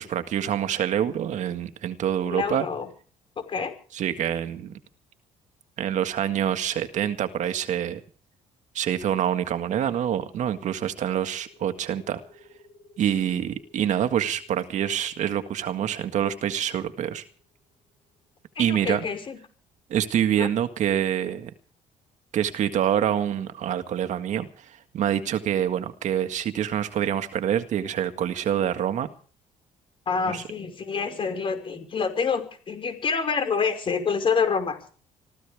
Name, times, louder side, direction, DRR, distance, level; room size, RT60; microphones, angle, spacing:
voice 1, 0.0-2.7 3.9-4.7 5.8-8.0 8.7-12.2 13.0-17.2 18.6-19.1 19.9-21.5 22.3-29.1 30.3-30.4, right 10 dB, 60° right, 9 dB, 1.9 m, -26 dB
voice 2, 2.3-2.9 3.5-3.7 18.6-19.4 20.4-20.5 30.1-34.9, left 5 dB, 40° left, 7 dB, 5.3 m, -27 dB
sound 1, 11.3-18.5, left 2 dB, 25° left, 4.9 m, -57 dB
26.0 x 16.0 x 3.5 m, 0.42 s
cardioid pair, 110°, 14 cm